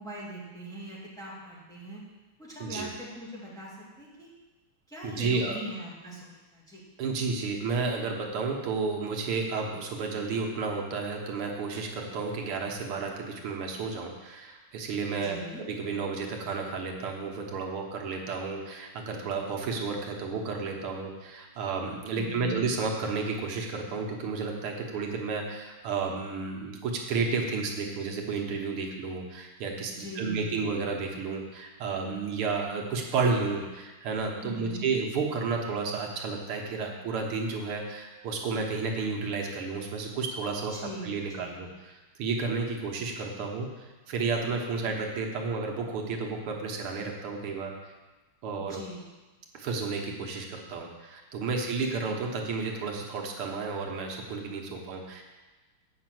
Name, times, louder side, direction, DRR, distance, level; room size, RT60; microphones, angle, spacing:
voice 1, 0.0-2.0 2.4-4.3 4.9-6.8 15.2-15.6 22.1-22.7 29.9-30.6 34.4-34.9 40.7-41.7 44.8-45.0 48.5-49.0, right 1 dB, ahead, -7 dB, 2.4 m, -41 dB
voice 2, 2.6-2.9 5.0-5.6 7.0-40.7 41.0-47.7 48.4-48.8 49.5-55.2, right 4 dB, 90° right, 1 dB, 2.1 m, -32 dB
7.8 x 5.7 x 7.7 m, 1.2 s
omnidirectional pair, 2.3 m